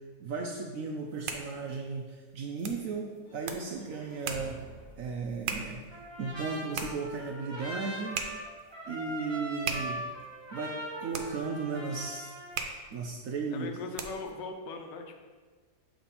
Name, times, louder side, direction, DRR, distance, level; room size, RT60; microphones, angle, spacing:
voice 1, 0.2-4.6 5.0-5.8 6.2-8.2 8.9-10.0 10.5-12.3 12.9-13.7, right 4 dB, 70° right, 1 dB, 0.8 m, -35 dB
sound 1, 0.9-14.4, right 6 dB, 85° right, 1.3 m, -41 dB
sound 2, 3.2-7.2, right 1 dB, 30° left, 1.1 m, -51 dB
Trumpet, 5.9-12.6, right 1 dB, 25° right, 0.6 m, -41 dB
voice 2, 13.5-15.1, left 3 dB, 90° left, 4 dB, 1.4 m, -39 dB
7.1 x 3.4 x 4.1 m, 1.4 s
omnidirectional pair, 1.9 m